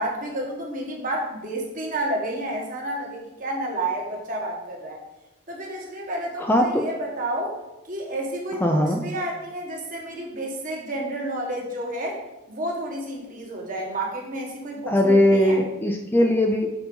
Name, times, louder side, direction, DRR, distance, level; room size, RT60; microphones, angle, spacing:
voice 1, 0.0-5.0 5.5-7.5 7.9-12.2 12.5-15.6, right 1 dB, 40° right, -1 dB, 1.7 m, -30 dB
voice 2, 6.4-6.9 8.6-9.0 14.9-16.7, left 1 dB, 10° left, 2 dB, 0.5 m, -20 dB
6.9 x 4.1 x 5.5 m, 0.98 s
head